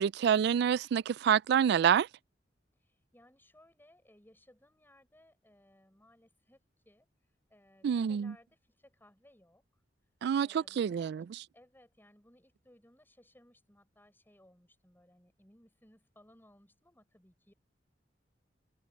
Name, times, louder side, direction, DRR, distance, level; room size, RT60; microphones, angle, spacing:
voice 1, 0.0-2.1 7.8-8.3 10.2-11.2, right 8 dB, 65° right, 0.3 m, -27 dB
voice 2, 2.8-6.6 6.9-7.1 7.5-9.6 10.4-11.1 11.5-17.5, left 1 dB, 10° left, 7.1 m, -63 dB
head